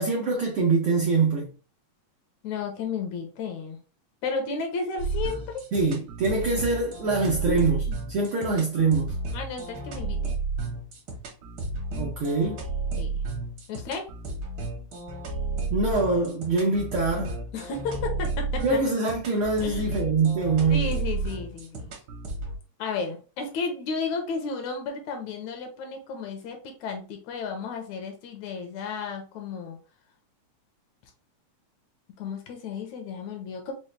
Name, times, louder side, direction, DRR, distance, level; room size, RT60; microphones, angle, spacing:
voice 1, 0.0-1.5 5.7-7.8 8.1-9.1 11.9-12.6 15.7-17.4 18.6-20.9, right 3 dB, 85° right, 1.2 m, -24 dB
voice 2, 2.4-3.8 4.2-5.6 7.5-8.0 9.3-10.4 13.0-13.2 13.7-14.1 17.5-18.6 19.6-19.9 20.7-21.9 22.8-29.8 32.2-33.7, left 4 dB, 75° left, 2.0 m, -33 dB
sound 1, 5.0-22.6, right 3 dB, 65° right, 1.3 m, -32 dB
5.3 x 2.2 x 3.1 m
omnidirectional pair, 3.5 m